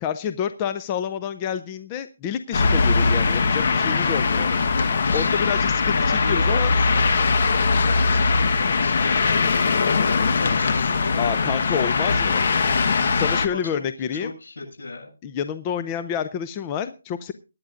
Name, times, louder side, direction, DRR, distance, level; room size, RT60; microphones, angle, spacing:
voice 1, 0.0-4.5 5.1-6.7 11.2-12.4 13.1-14.3 15.2-17.3, left 8 dB, 15° left, 11 dB, 0.5 m, -28 dB
sound 1, 2.5-13.5, left 4 dB, 45° left, 1.1 m, -21 dB
voice 2, 5.1-5.5 5.9-7.3 7.7-10.0 10.3-11.3 11.6-11.9 12.8-13.8 14.1-15.1, left 3 dB, 75° left, 3 dB, 7.9 m, -35 dB
22.5 x 10.0 x 2.5 m, 0.31 s
hypercardioid pair, 170°, 0 cm